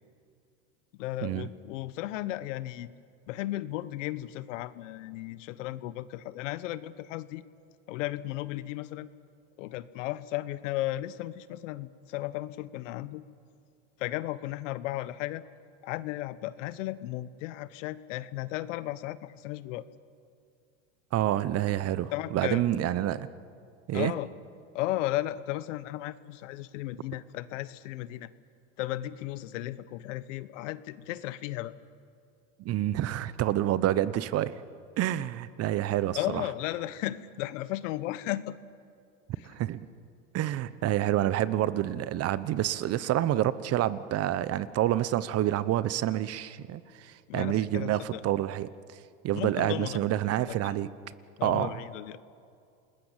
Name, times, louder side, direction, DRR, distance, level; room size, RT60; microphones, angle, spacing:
voice 1, 0.9-2.9 3.3-7.4 7.9-9.1 9.6-13.2 14.0-15.4 15.8-19.8 22.1-22.6 23.9-24.3 24.7-28.3 28.8-31.7 36.2-38.6 47.3-48.2 49.3-50.0 50.6-50.8 51.4-52.2, left 15 dB, 75° left, 15 dB, 1.1 m, -35 dB
voice 2, 21.1-23.3 23.9-24.1 32.6-34.6 35.0-36.4 39.4-39.9 40.3-48.7 49.2-50.9 51.4-51.8, right 13 dB, 40° right, 16 dB, 1.0 m, -28 dB
28.5 x 20.5 x 7.5 m, 2.3 s
supercardioid pair, 115°, 38 cm